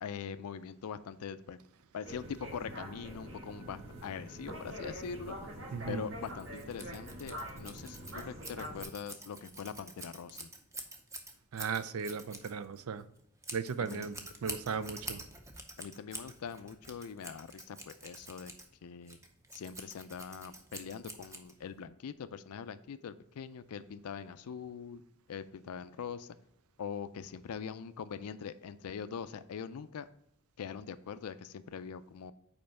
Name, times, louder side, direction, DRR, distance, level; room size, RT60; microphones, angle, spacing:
voice 1, 0.0-1.6 1.9-5.4 5.9-10.5 13.8-14.1 15.8-18.5 18.8-19.2 19.5-25.0 25.3-26.4 26.8-30.1 30.6-32.3, left 7 dB, 85° left, 13 dB, 0.4 m, -42 dB
sound 1, 2.0-8.8, equal, 60° right, 1.6 m, -45 dB
voice 2, 5.7-6.0 11.5-13.1 13.5-14.1 14.4-15.2, right 6 dB, 80° right, 14 dB, 0.4 m, -36 dB
Scissors, 6.2-21.8, right 2 dB, 15° right, 0.6 m, -47 dB
5.3 x 4.4 x 5.8 m, 0.79 s
head